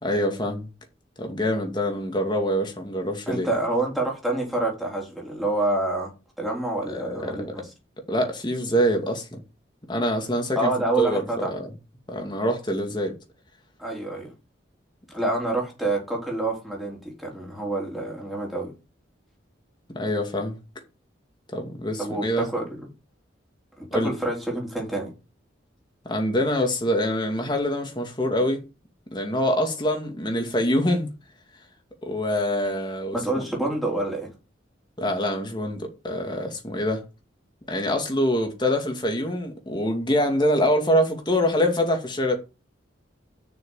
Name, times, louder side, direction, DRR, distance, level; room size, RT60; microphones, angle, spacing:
voice 1, 0.0-0.7 1.2-3.5 6.9-7.6 8.1-9.4 9.9-11.7 12.1-13.1 19.9-20.6 21.5-22.5 23.9-24.1 26.0-28.6 29.1-31.1 32.0-33.5 35.0-37.0 37.7-42.4, equal, 25° left, 2.3 m, -25 dB
voice 2, 3.3-6.1 6.4-7.6 10.6-11.5 13.8-14.3 15.1-18.7 22.0-22.8 23.8-25.1 33.1-34.3, right 2 dB, ahead, 3.8 m, -27 dB
7.2 x 6.4 x 7.3 m
head